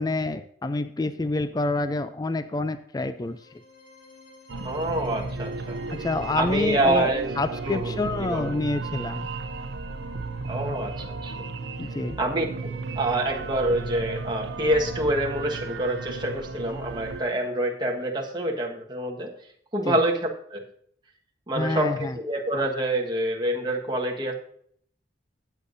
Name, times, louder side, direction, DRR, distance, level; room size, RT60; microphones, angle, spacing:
voice 1, 0.0-3.4 5.9-9.3 11.8-12.2 19.9-20.0 21.6-22.2, left 2 dB, 20° left, 12 dB, 0.4 m, -27 dB
sound 1, 3.1-17.2, left 3 dB, 45° left, 3.7 m, -51 dB
sound 2, 4.5-17.2, right 3 dB, 85° right, 0.6 m, -34 dB
voice 2, 4.6-5.8 6.3-7.3 7.6-8.6 10.5-11.3 12.2-19.3 19.7-20.6 21.5-24.3, right 1 dB, 25° right, 0 dB, 1.4 m, -27 dB
14.0 x 8.2 x 2.6 m, 0.64 s
head